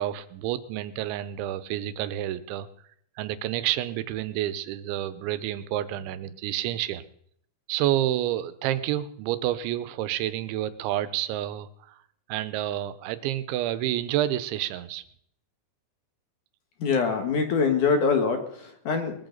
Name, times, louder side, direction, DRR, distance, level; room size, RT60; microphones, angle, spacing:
voice 1, 0.0-2.7 3.2-7.0 7.7-12.0 12.3-15.0, right 13 dB, 90° right, 13 dB, 3.2 m, -29 dB
voice 2, 16.8-19.1, left 5 dB, 55° left, 5 dB, 2.5 m, -24 dB
21.5 x 14.0 x 3.9 m, 0.68 s
omnidirectional pair, 5.1 m